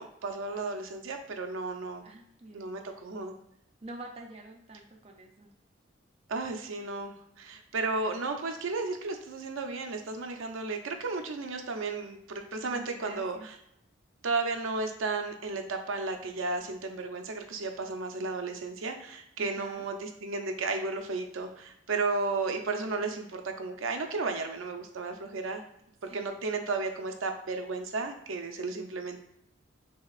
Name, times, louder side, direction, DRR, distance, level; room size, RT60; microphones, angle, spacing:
voice 1, 0.0-2.0 2.5-3.4 6.3-13.4 14.2-25.6 26.1-29.2, right 3 dB, 85° right, 5 dB, 0.6 m, -33 dB
voice 2, 2.0-2.7 3.8-5.5 12.7-13.5 19.4-19.9 26.1-26.2, right 2 dB, 30° right, 2 dB, 0.4 m, -46 dB
6.5 x 2.8 x 2.4 m, 0.76 s
head